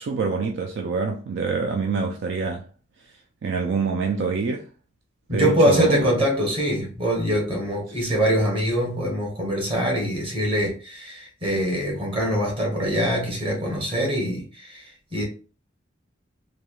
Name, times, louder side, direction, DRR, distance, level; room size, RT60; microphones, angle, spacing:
voice 1, 0.0-2.6 3.4-4.7 5.3-6.1, right 4 dB, 65° right, 0.4 m, -25 dB
voice 2, 5.3-15.2, equal, 30° right, 1.1 m, -23 dB
3.1 x 2.3 x 2.3 m
head